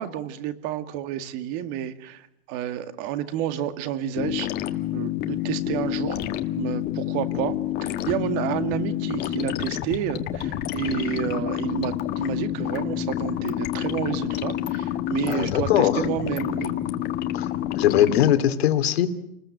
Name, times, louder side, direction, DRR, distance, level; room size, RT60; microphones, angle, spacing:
voice 1, 0.0-4.5 4.9-6.2 6.6-7.5 7.8-16.7, right 11 dB, 40° right, 9 dB, 2.1 m, -30 dB
sound 1, 4.2-18.3, left 12 dB, 30° left, 1.6 m, -28 dB
voice 2, 15.3-16.0 17.3-17.5 17.7-19.1, left 11 dB, 70° left, 8 dB, 2.8 m, -21 dB
29.0 x 20.5 x 7.8 m, 0.83 s
supercardioid pair, 150°, 32 cm